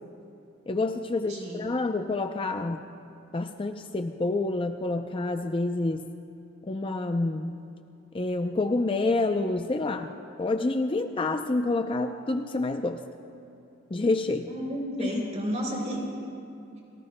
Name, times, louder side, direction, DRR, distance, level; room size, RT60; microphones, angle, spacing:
voice 1, 0.7-2.8 3.3-6.1 6.6-7.6 8.1-10.1 10.4-13.0 13.9-14.5 15.0-15.2, left 2 dB, 25° left, 6 dB, 0.5 m, -28 dB
voice 2, 1.3-1.6 14.5-16.1, equal, 35° right, -1 dB, 3.3 m, -32 dB
30.0 x 19.0 x 2.2 m, 2.7 s
head